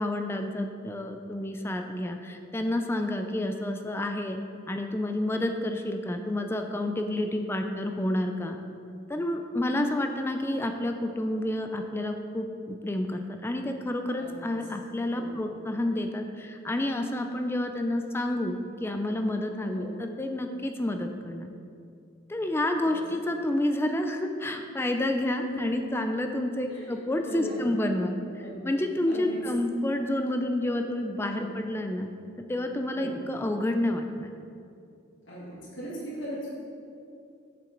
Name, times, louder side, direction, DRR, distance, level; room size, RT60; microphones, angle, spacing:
voice 1, 0.0-4.4 4.7-8.6 9.1-21.5 22.3-28.1 28.6-32.1 32.5-34.3, left 1 dB, 10° left, 5 dB, 0.3 m, -29 dB
voice 2, 14.2-14.5 15.1-15.3 19.7-19.9 22.3-22.4 22.8-23.0 25.3-25.8 26.3-27.7 28.3-28.8 29.1-29.4 31.3-31.5 32.9-33.2 35.2-36.5, equal, 70° left, -7 dB, 1.8 m, -39 dB
7.5 x 6.8 x 3.9 m, 2.5 s
head